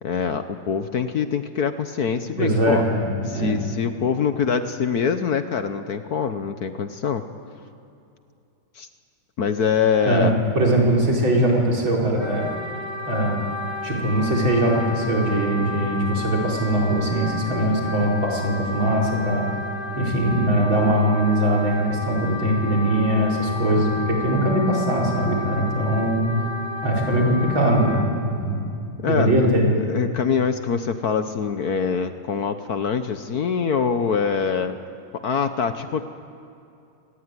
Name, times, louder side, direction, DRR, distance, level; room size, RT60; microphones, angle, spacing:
voice 1, 0.0-2.8 3.3-7.2 8.8-8.9 9.4-10.3 29.0-29.5 29.8-34.8 35.2-36.0, left 6 dB, 55° left, 9 dB, 1.3 m, -24 dB
voice 2, 2.4-3.6 10.1-12.5 13.1-13.4 13.8-19.5 20.0-26.3 26.8-28.7 29.1-29.7, right 1 dB, 75° right, -3 dB, 5.9 m, -21 dB
Wind instrument woodwind instrument, 12.2-28.1, left 3 dB, 10° left, 3.5 m, -32 dB
26.0 x 19.5 x 9.7 m, 2.6 s
omnidirectional pair, 2.2 m